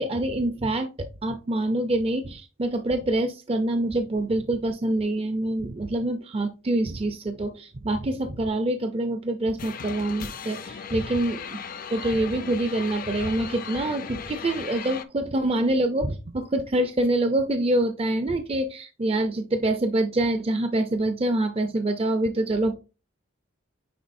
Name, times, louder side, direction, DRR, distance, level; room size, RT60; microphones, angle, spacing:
voice 1, 0.0-11.6 11.9-22.7, right 1 dB, 30° right, 7 dB, 0.5 m, -26 dB
sound 1, 9.6-15.0, left 6 dB, 45° left, 0.5 m, -37 dB
9.4 x 3.9 x 2.6 m, 0.31 s
head